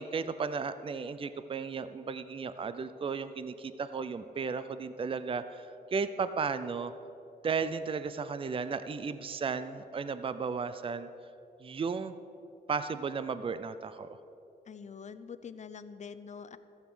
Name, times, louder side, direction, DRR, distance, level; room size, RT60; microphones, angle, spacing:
voice 1, 0.0-6.9 7.4-11.1 11.6-12.1 12.7-14.2, right 5 dB, 35° right, 12 dB, 0.5 m, -34 dB
voice 2, 14.6-16.6, left 6 dB, 45° left, 12 dB, 0.6 m, -45 dB
14.5 x 8.2 x 6.2 m, 2.8 s
cardioid pair, 95°, 17 cm